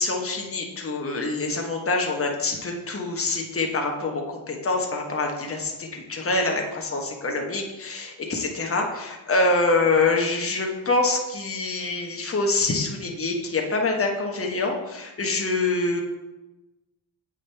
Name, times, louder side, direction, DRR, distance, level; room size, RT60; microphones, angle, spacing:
voice 1, 0.0-16.0, left 3 dB, 30° left, 1 dB, 1.2 m, -25 dB
8.3 x 5.1 x 3.4 m, 1.1 s
cardioid pair, 65°, 48 cm